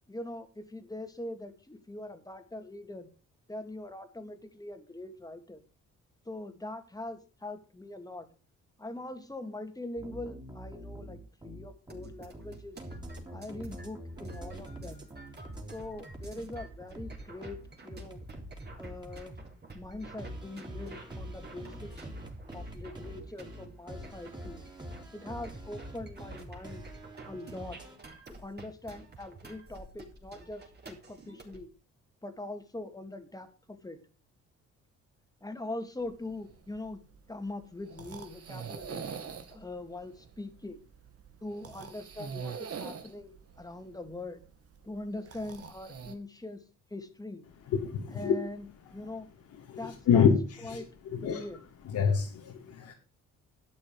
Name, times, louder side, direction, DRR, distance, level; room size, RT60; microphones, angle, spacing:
voice 1, 0.1-3.1 3.5-5.6 6.3-8.3 8.8-12.8 13.3-15.1 15.7-17.6 17.8-18.2 18.8-19.3 19.7-22.1 22.5-24.6 25.1-26.8 27.3-27.8 28.3-31.7 32.2-34.0 35.4-37.0 37.3-39.1 39.5-40.8 41.4-44.4 44.8-46.6 46.9-47.4 48.1-48.7 48.9-49.3 49.8-50.2 50.6-51.6, left 2 dB, 10° left, 2.4 m, -42 dB
sound 1, 10.0-15.7 16.0-19.5 20.2-28.0, right 1 dB, 15° right, 3.7 m, -45 dB
sound 2, 11.9-31.6, right 3 dB, 35° right, 3.7 m, -50 dB
sound 3, 36.0-46.1, right 6 dB, 50° right, 1.9 m, -44 dB
voice 2, 47.7-48.4 49.7-50.3 50.7-50.8 51.1-51.4 51.9-52.9, left 7 dB, 75° left, 2.6 m, -26 dB
11.5 x 8.5 x 5.0 m
cardioid pair, 90°, 30 cm